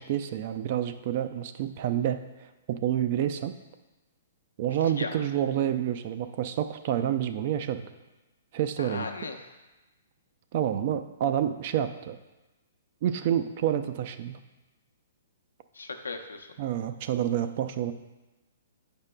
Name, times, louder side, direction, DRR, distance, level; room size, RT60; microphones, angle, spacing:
voice 1, 0.0-2.2 2.7-3.5 4.6-7.8 8.5-9.1 10.5-12.2 13.0-14.4 16.6-17.9, right 10 dB, 50° right, 10 dB, 0.4 m, -28 dB
voice 2, 4.8-5.2 8.8-9.5 15.7-16.5, left 4 dB, 85° left, 4 dB, 0.7 m, -37 dB
8.7 x 5.2 x 2.2 m, 1.1 s
hypercardioid pair, 125°, 0 cm